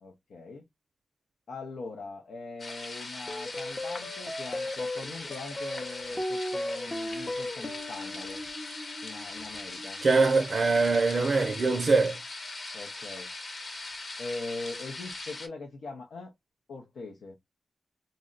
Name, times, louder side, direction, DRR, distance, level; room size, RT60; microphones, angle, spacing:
voice 1, 0.0-0.6 1.5-8.4 9.0-10.0 12.7-13.3 14.2-16.3 16.7-17.4, left 3 dB, 90° left, 0.7 m, -41 dB
sound 1, 2.6-15.5, left 2 dB, 50° left, 1.0 m, -40 dB
sound 2, 3.3-11.9, left 1 dB, 25° left, 0.7 m, -38 dB
voice 2, 10.0-12.2, right 3 dB, 55° right, 0.5 m, -23 dB
2.6 x 2.1 x 3.8 m
cardioid pair, 75°, 0 cm